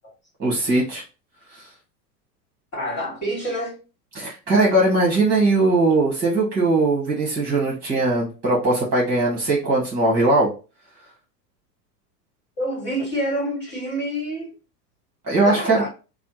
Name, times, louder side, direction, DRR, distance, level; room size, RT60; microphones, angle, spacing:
voice 1, 0.4-1.0 1.5-1.7 4.1-10.5 15.3-15.8, right 2 dB, 20° right, 1.3 m, -20 dB
voice 2, 2.7-3.8 12.6-14.5 15.4-15.9, equal, 30° left, 1.7 m, -27 dB
3.3 x 2.2 x 2.9 m
hypercardioid pair, 100°, 49 cm